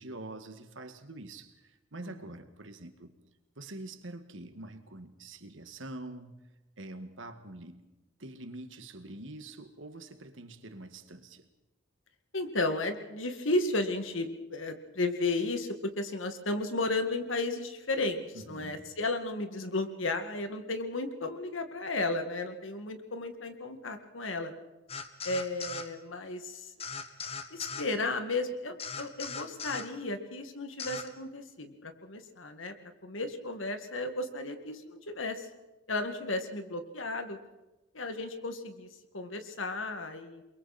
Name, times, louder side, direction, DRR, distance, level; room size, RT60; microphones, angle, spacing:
voice 1, 0.0-3.1 3.6-7.8 8.2-11.5 18.3-18.8, right 2 dB, 75° right, 2.0 m, -45 dB
voice 2, 12.3-24.5 25.2-26.7 27.5-32.7 33.0-35.5 35.9-37.4 37.9-38.9 39.1-40.4, left 2 dB, 85° left, 2.2 m, -34 dB
sound 1, 24.9-25.9 26.8-27.9 28.8-29.9 30.8-31.1, left 5 dB, 30° left, 1.4 m, -39 dB
29.0 x 22.5 x 4.4 m
head